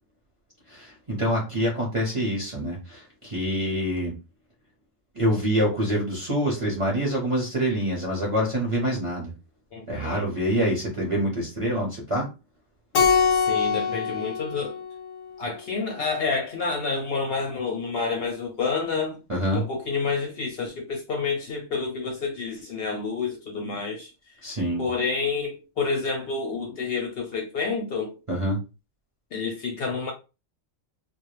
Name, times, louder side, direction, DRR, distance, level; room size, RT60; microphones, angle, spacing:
voice 1, 0.7-4.1 5.1-9.3 9.9-12.3 19.3-19.6 24.4-24.8 28.3-28.6, equal, 35° right, 0.6 m, -26 dB
voice 2, 9.7-10.3 13.1-14.7 15.4-19.2 19.5-24.1 24.8-28.2 29.3-30.1, left 4 dB, 60° left, 0.7 m, -29 dB
Keyboard (musical), 12.9-15.6, left 6 dB, 85° left, 1.0 m, -24 dB
2.2 x 2.0 x 3.0 m
omnidirectional pair, 1.3 m